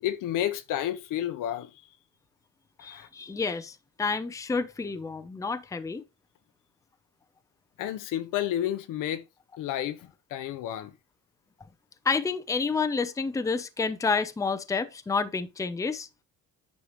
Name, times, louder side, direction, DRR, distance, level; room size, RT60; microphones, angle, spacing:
voice 1, 0.0-1.7 2.8-3.1 7.8-9.2 9.6-10.9, left 11 dB, 75° left, 0.9 m, -31 dB
voice 2, 2.8-6.0 12.1-16.1, left 4 dB, 10° left, 0.6 m, -29 dB
9.4 x 5.5 x 3.1 m
cardioid pair, 130°, 32 cm